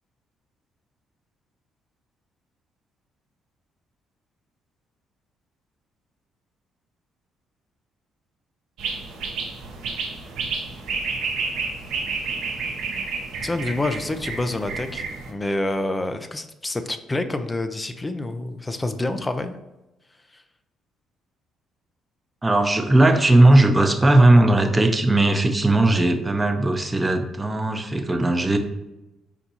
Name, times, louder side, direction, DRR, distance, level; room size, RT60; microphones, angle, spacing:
sound 1, 8.8-15.3, right 4 dB, 70° right, 0.8 m, -30 dB
voice 1, 13.4-19.6 20.3-20.4, left 2 dB, 20° left, 8 dB, 0.5 m, -27 dB
voice 2, 22.4-28.6, right 2 dB, 20° right, 6 dB, 0.7 m, -17 dB
4.4 x 4.1 x 2.8 m, 0.97 s
hypercardioid pair, 55°, 0 cm